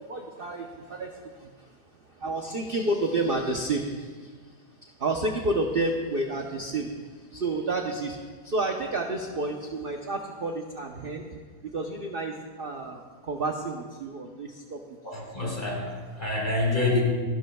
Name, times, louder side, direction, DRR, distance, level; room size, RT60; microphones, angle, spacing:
voice 1, 0.0-11.3 11.6-14.8, right 2 dB, 45° right, 2 dB, 0.8 m, -31 dB
voice 2, 15.0-17.0, left 2 dB, 25° left, -3 dB, 4.0 m, -27 dB
27.0 x 11.5 x 2.3 m, 1.5 s
omnidirectional pair, 1.8 m